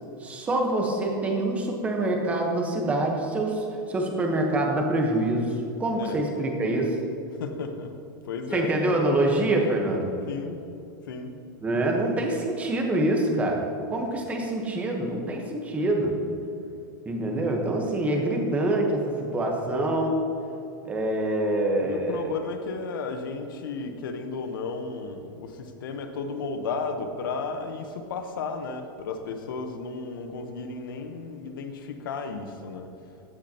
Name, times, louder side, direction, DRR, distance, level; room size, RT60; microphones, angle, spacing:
voice 1, 0.2-7.0 8.5-10.1 11.6-16.2 17.0-20.2 20.8-22.3, right 1 dB, 10° right, 1 dB, 1.1 m, -25 dB
voice 2, 7.4-7.9 8.3-8.7 10.3-10.6 11.1-11.3 21.7-32.9, left 4 dB, 90° left, 7 dB, 1.1 m, -34 dB
14.5 x 8.5 x 2.9 m, 2.8 s
supercardioid pair, 165°, 11 cm